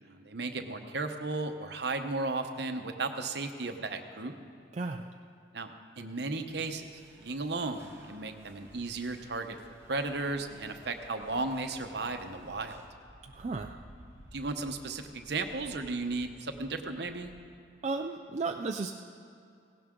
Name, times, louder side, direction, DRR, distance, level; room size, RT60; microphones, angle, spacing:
voice 1, 0.0-4.3 5.5-9.6 9.9-12.8 14.3-17.3, right 3 dB, 55° right, 6 dB, 0.9 m, -35 dB
voice 2, 4.7-5.1 13.3-13.8 17.8-18.9, right 3 dB, 35° right, 3 dB, 0.4 m, -34 dB
sound 1, 6.5-12.9, right 1 dB, 15° right, 1.2 m, -56 dB
Bird vocalization bird call bird song, 8.4-17.4, equal, 80° left, 4.2 m, -56 dB
17.0 x 17.0 x 3.8 m, 2.5 s
head